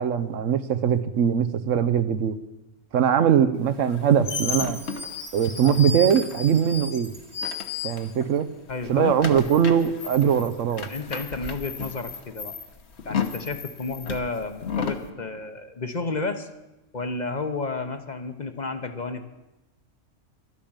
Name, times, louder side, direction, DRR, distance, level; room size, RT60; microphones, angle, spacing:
voice 1, 0.0-2.4 2.9-4.8 5.3-7.1 7.8-8.5 8.9-10.9, right 8 dB, 80° right, 1.1 m, -21 dB
sound 1, 3.8-8.4 8.7-15.1, left 6 dB, 60° left, 1.4 m, -33 dB
Chime, 4.4-8.5, right 3 dB, 55° right, 1.8 m, -47 dB
voice 2, 8.7-9.1 10.9-12.6 13.0-16.5 16.9-19.3, left 3 dB, 40° left, 0.9 m, -31 dB
12.0 x 10.0 x 8.8 m
omnidirectional pair, 1.3 m